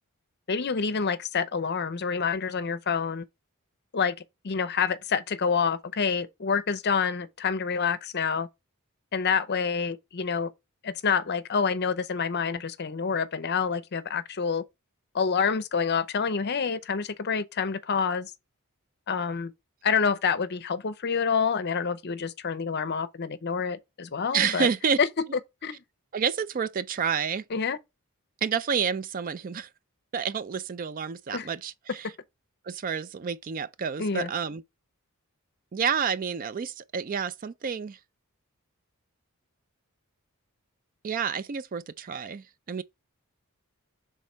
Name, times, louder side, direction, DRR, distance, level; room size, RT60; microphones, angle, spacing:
voice 1, 0.5-3.3 3.9-4.2 4.4-8.5 9.1-10.5 10.8-14.6 15.1-18.3 19.1-19.5 19.8-24.7 25.0-25.1 25.6-25.8 27.5-27.8 31.3-31.5 34.0-34.3, left 6 dB, 50° left, 0.6 m, -27 dB
voice 2, 24.3-25.0 26.1-27.4 28.4-29.7 30.1-32.1 32.7-34.6 35.7-38.0 41.0-42.8, right 6 dB, 40° right, 0.4 m, -29 dB
6.2 x 3.7 x 4.4 m
head